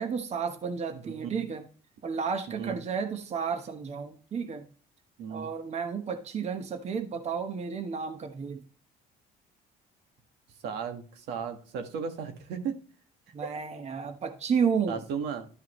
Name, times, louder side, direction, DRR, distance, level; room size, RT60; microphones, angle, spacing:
voice 1, 0.0-1.6 2.0-4.6 5.3-8.6 13.3-15.0, right 6 dB, 40° right, 7 dB, 1.1 m, -32 dB
voice 2, 0.9-1.3 2.6-2.8 5.2-5.5 10.6-12.8 13.4-13.5 14.9-15.5, right 6 dB, 85° right, 5 dB, 1.7 m, -35 dB
12.0 x 5.7 x 3.1 m, 0.39 s
cardioid pair, 110°, 17 cm